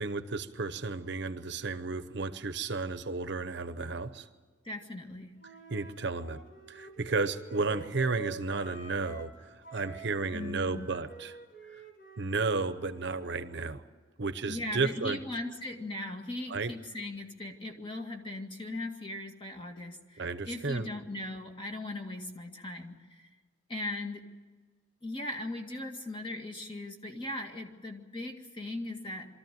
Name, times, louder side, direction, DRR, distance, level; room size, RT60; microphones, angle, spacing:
voice 1, 0.0-4.3 5.7-6.4 6.7-11.4 12.2-13.8 14.2-15.2 16.5-16.7 20.2-20.9, right 3 dB, 60° right, 12 dB, 0.9 m, -33 dB
voice 2, 4.6-5.4 10.3-10.9 14.5-23.3 23.7-24.3 25.0-29.3, left 2 dB, 25° left, 3 dB, 2.0 m, -39 dB
Wind instrument woodwind instrument, 5.4-9.4 9.6-13.6, right 4 dB, 45° left, 3.2 m, -47 dB
23.5 x 14.0 x 9.2 m, 1.5 s
head